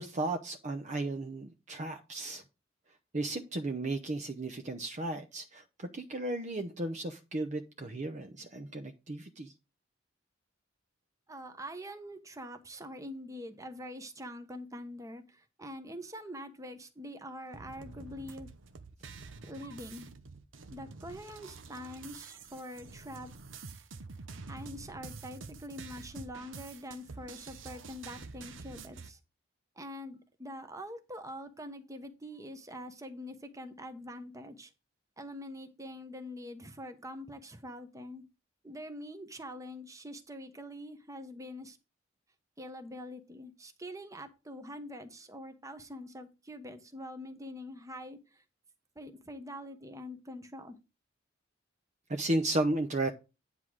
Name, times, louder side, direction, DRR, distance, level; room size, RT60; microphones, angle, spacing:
voice 1, 0.0-2.4 3.1-9.5 52.1-53.1, right 2 dB, 40° right, 0.7 m, -34 dB
voice 2, 11.3-18.5 19.5-20.1 20.7-23.3 24.5-29.2 29.8-34.7 35.2-38.3 38.6-41.8 42.6-48.4 48.9-50.8, equal, 15° right, 1.1 m, -44 dB
sound 1, 17.5-29.1, right 4 dB, 75° right, 0.9 m, -48 dB
9.9 x 3.7 x 6.2 m
head